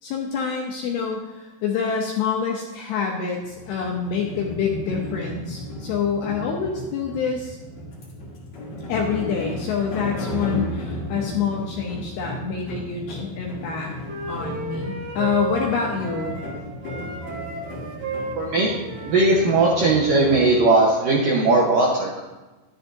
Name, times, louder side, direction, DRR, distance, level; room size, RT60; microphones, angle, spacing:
voice 1, 0.0-7.6 8.9-13.9 14.3-16.4, left 6 dB, 75° left, 0 dB, 2.4 m, -26 dB
sound 1, 3.4-20.6, equal, 50° left, 2.6 m, -34 dB
Wind instrument woodwind instrument, 13.7-16.6 16.8-20.3, right 3 dB, 55° right, 3.5 m, -34 dB
voice 2, 18.4-18.7 19.1-22.2, right 2 dB, 75° right, -3 dB, 2.0 m, -18 dB
12.5 x 10.5 x 2.7 m, 1.2 s
omnidirectional pair, 5.5 m